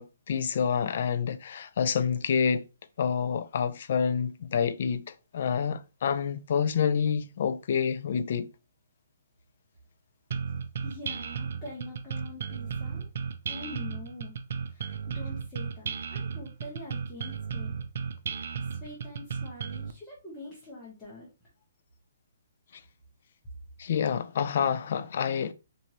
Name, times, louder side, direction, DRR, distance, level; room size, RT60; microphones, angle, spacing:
voice 1, 0.0-2.7 3.0-8.5 23.8-25.5, left 7 dB, 45° left, 0.4 m, -28 dB
sound 1, 10.3-19.9, right 6 dB, 50° right, 0.4 m, -35 dB
voice 2, 10.8-13.1 13.5-14.3 14.7-17.7 18.6-21.3, left 2 dB, 10° left, 1.0 m, -44 dB
4.4 x 2.6 x 2.9 m
hypercardioid pair, 170°, 0 cm